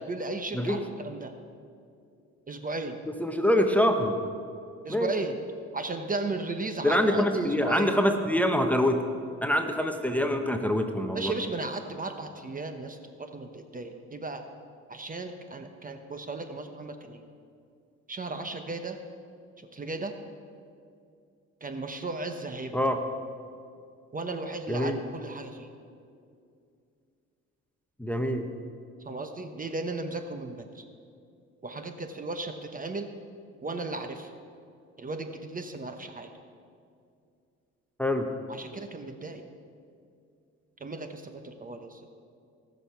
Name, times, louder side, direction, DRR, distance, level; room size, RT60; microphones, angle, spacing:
voice 1, 0.0-1.3 2.5-3.0 4.8-5.4 5.7-8.0 11.1-14.4 14.9-17.2 18.1-19.0 19.7-20.1 21.6-22.8 24.1-25.7 29.0-30.8 31.6-33.1 33.6-34.3 35.0-36.3 38.5-39.5 40.8-42.0, right 3 dB, 30° right, 7 dB, 1.0 m, -35 dB
voice 2, 0.5-0.8 3.1-4.2 4.9-5.1 6.8-9.0 9.4-11.3 22.7-23.0 24.7-25.0 28.0-28.4 38.0-38.3, equal, 5° left, 5 dB, 1.0 m, -25 dB
18.0 x 6.5 x 5.7 m, 2.4 s
cardioid pair, 90°, 30 cm